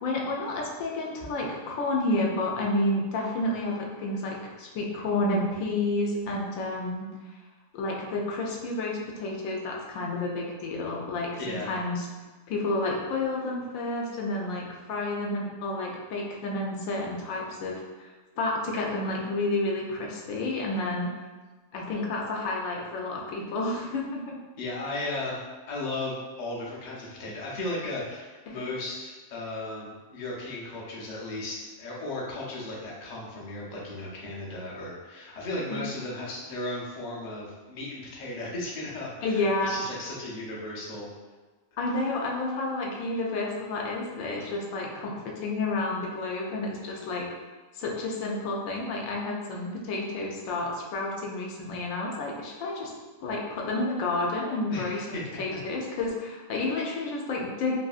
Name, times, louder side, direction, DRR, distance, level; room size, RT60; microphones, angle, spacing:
voice 1, 0.0-7.1 7.7-12.1 12.5-18.1 18.4-21.2 21.7-24.4 28.5-28.7 35.7-35.8 39.2-39.7 41.8-47.3 47.7-52.9 53.2-57.7, left 2 dB, 85° left, -2 dB, 1.0 m, -30 dB
voice 2, 11.4-11.7 24.6-41.1 54.7-55.2, left 2 dB, 45° left, -5 dB, 0.6 m, -35 dB
2.9 x 2.6 x 2.3 m, 1.3 s
omnidirectional pair, 1.4 m